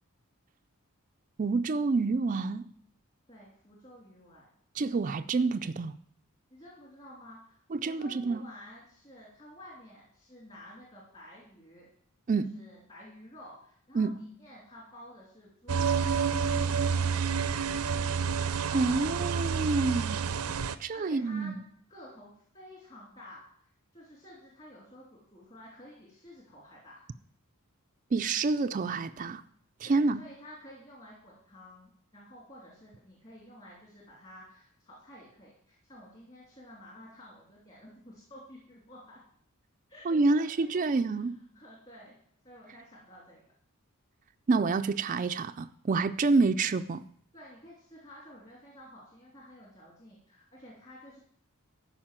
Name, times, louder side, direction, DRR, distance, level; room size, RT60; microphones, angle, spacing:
voice 1, 1.4-2.7 4.8-6.0 7.7-8.4 12.3-12.5 13.9-14.1 18.7-20.2 20.8-21.6 28.1-29.4 29.8-30.2 40.1-41.4 44.5-47.0, right 3 dB, 35° right, 0.4 m, -28 dB
voice 2, 3.3-4.5 6.5-11.9 12.3-17.1 20.9-21.5 21.9-26.9 29.8-39.2 39.9-41.3 41.5-42.2 42.4-43.5 47.3-51.2, left 1 dB, 30° left, 2.8 m, -51 dB
sound 1, 15.7-20.8, right 6 dB, 90° right, 0.6 m, -29 dB
13.5 x 5.0 x 7.4 m
head